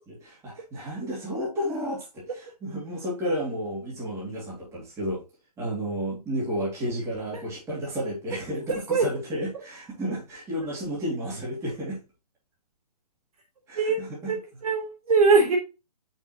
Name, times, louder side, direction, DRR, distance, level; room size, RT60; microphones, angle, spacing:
voice 1, 0.1-5.2 5.6-12.0 13.7-14.4, equal, 15° right, -6 dB, 2.8 m, -32 dB
voice 2, 8.7-9.1 13.8-14.4 14.6-15.6, right 4 dB, 60° right, 0 dB, 3.5 m, -22 dB
6.6 x 5.8 x 3.0 m, 0.30 s
figure-of-eight pair, 135°, 21 cm